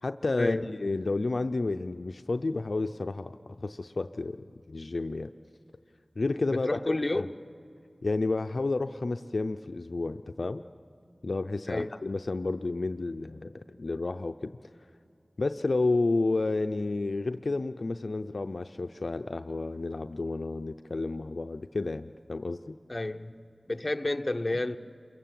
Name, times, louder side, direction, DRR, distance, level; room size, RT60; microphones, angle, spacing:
voice 1, 0.0-5.3 6.2-6.8 7.1-7.3 8.0-10.6 11.2-14.5 15.4-22.7, left 3 dB, 70° left, 0.5 m, -31 dB
voice 2, 6.7-7.2 11.7-11.9 22.9-23.3 23.7-24.8, left 2 dB, 35° left, 0.9 m, -30 dB
28.0 x 23.5 x 7.6 m
wide cardioid pair, 50°, 0 cm